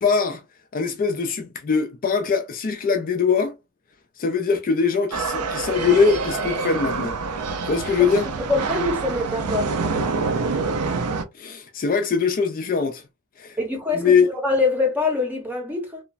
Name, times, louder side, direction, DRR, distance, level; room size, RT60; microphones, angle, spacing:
voice 1, 0.0-0.4 0.7-3.5 4.2-7.1 7.7-8.3 11.3-13.0 13.4-13.6 13.9-14.3, left 5 dB, 40° left, 0.3 m, -22 dB
sound 1, 5.1-11.2, right 4 dB, 80° right, 0.5 m, -26 dB
voice 2, 8.2-9.7 13.6-16.0, left 3 dB, 10° right, 0.8 m, -24 dB
2.9 x 2.1 x 2.4 m
head